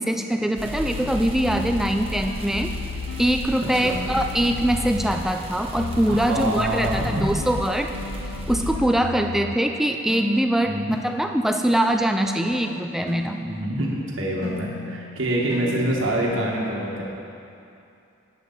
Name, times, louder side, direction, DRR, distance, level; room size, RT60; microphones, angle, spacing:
voice 1, 0.0-2.7 3.2-7.9 8.5-13.4, right 1 dB, ahead, 4 dB, 0.3 m, -23 dB
sound 1, 0.6-8.7, right 1 dB, 25° right, 0.9 m, -34 dB
sound 2, 0.8-5.4 5.8-9.7 10.1-13.8 14.4-16.5, left 5 dB, 75° left, 0.4 m, -35 dB
voice 2, 6.1-7.2 10.6-10.9 13.4-17.0, right 1 dB, 65° right, -3 dB, 1.5 m, -26 dB
11.0 x 9.1 x 4.0 m, 2.7 s
head